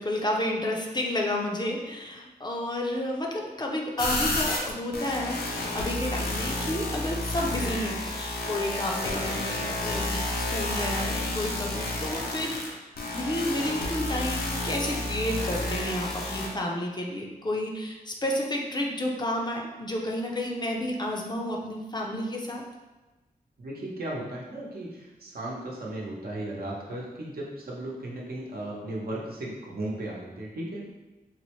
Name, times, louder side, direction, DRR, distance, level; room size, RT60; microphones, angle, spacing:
voice 1, 0.0-22.6, left 1 dB, 30° left, 0 dB, 0.5 m, -31 dB
sound 1, 4.0-16.5, left 2 dB, 80° left, 0.6 m, -31 dB
voice 2, 23.6-30.8, right 1 dB, 75° right, -4 dB, 0.8 m, -36 dB
4.0 x 2.1 x 3.0 m, 1.1 s
wide cardioid pair, 95°, 16 cm